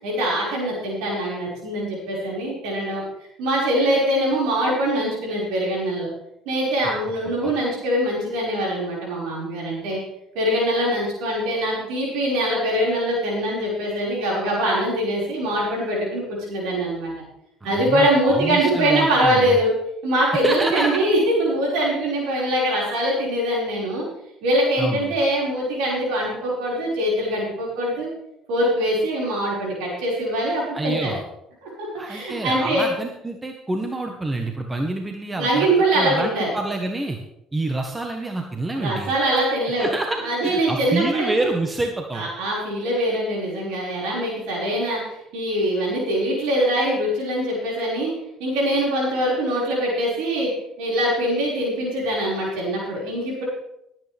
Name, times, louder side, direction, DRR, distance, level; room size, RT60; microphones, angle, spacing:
voice 1, 0.0-3.0 3.4-6.1 6.5-10.0 10.3-17.1 17.6-19.7 20.0-24.0 24.4-28.1 28.5-31.1 31.6-32.9 35.3-36.5 38.7-39.9 40.2-41.3 42.1-45.0 45.3-48.1 48.4-50.5 50.8-53.4, right 1 dB, 75° right, -4 dB, 5.5 m, -23 dB
voice 2, 17.6-19.6 20.3-21.0 24.8-25.1 30.7-31.2 31.9-37.2 37.5-39.1 39.8-42.3, right 2 dB, 20° right, 3 dB, 1.5 m, -27 dB
19.0 x 9.2 x 3.6 m, 0.81 s
hypercardioid pair, 65°, 0 cm